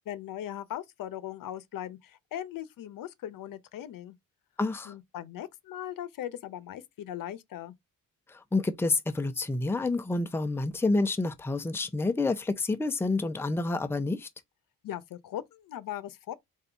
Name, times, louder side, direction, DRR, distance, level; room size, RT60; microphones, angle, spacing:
voice 1, 0.1-4.1 4.8-7.7 14.8-16.3, left 11 dB, 70° left, 0.8 m, -39 dB
voice 2, 4.6-4.9 8.3-14.3, left 3 dB, 5° left, 0.6 m, -28 dB
3.9 x 2.6 x 4.5 m
cardioid pair, 135°, 35 cm